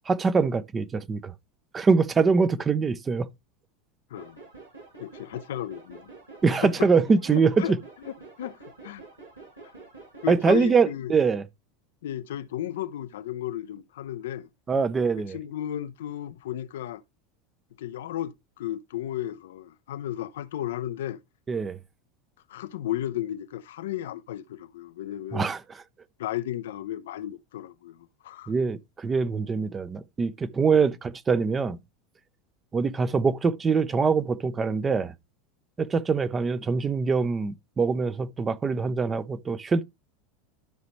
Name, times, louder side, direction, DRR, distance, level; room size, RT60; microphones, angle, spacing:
voice 1, 0.1-1.3 1.7-3.3 6.4-7.8 10.3-11.4 14.7-15.4 21.5-21.8 25.3-25.6 28.5-31.8 32.7-35.1 35.8-39.8, right 5 dB, 20° right, 0.8 m, -24 dB
sound 1, 4.2-10.5, right 3 dB, 90° right, 6.2 m, -47 dB
voice 2, 5.0-6.1 6.6-6.9 7.3-7.7 8.4-8.6 8.8-9.0 10.2-11.1 12.0-14.5 15.3-17.0 17.8-21.2 22.5-25.5 26.2-28.0 28.2-28.5 30.7-30.8, left 12 dB, 65° left, 0.6 m, -34 dB
12.5 x 5.1 x 3.1 m
figure-of-eight pair, 80°, 0 cm